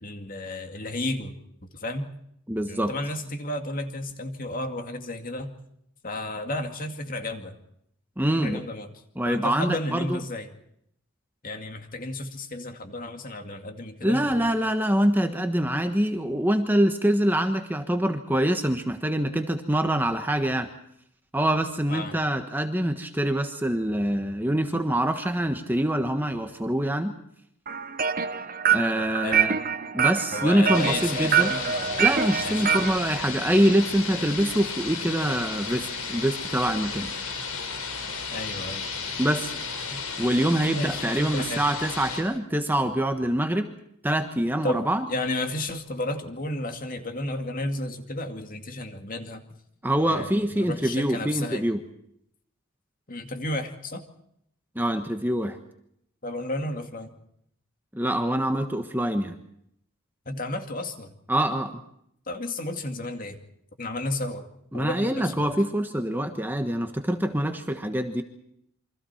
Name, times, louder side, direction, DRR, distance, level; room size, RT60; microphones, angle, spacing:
voice 1, 0.0-2.1 2.7-5.5 6.0-7.6 8.3-8.9 9.3-10.5 11.4-14.5 21.9-22.2 29.1-29.4 30.3-32.1 32.4-32.8 38.3-38.9 39.9-40.0 40.7-41.7 44.6-44.8 45.1-49.4 50.0-51.7 53.1-54.0 56.2-57.2 60.3-61.1 62.3-63.4 63.8-64.5 64.7-65.5, left 1 dB, 40° left, 6 dB, 2.3 m, -33 dB
voice 2, 2.5-2.9 8.2-8.6 9.1-10.2 14.0-20.7 21.3-27.1 28.7-29.6 29.9-31.5 32.0-37.1 39.2-39.5 40.2-43.7 44.0-45.1 49.8-51.8 54.7-55.6 57.9-59.4 61.3-61.8 64.7-68.2, right 1 dB, 10° right, 6 dB, 1.3 m, -25 dB
sound 1, 27.7-33.0, right 7 dB, 40° right, 0.8 m, -25 dB
sound 2, 30.7-42.2, left 5 dB, 75° left, 5.2 m, -34 dB
28.0 x 24.5 x 4.4 m, 0.73 s
head